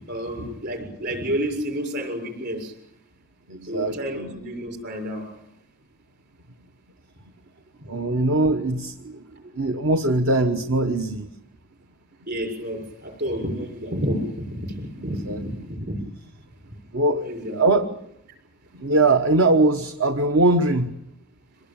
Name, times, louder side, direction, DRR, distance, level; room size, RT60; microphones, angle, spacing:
voice 1, 0.1-2.7 3.7-5.3 12.3-16.1 17.2-17.6, equal, 50° right, 4 dB, 6.9 m, -30 dB
voice 2, 3.5-4.4 7.9-9.1 9.5-11.3 15.1-15.4 16.9-17.2 17.5-17.9 18.8-20.9, right 2 dB, 65° right, 7 dB, 1.2 m, -21 dB
25.5 x 19.0 x 8.9 m, 0.79 s
head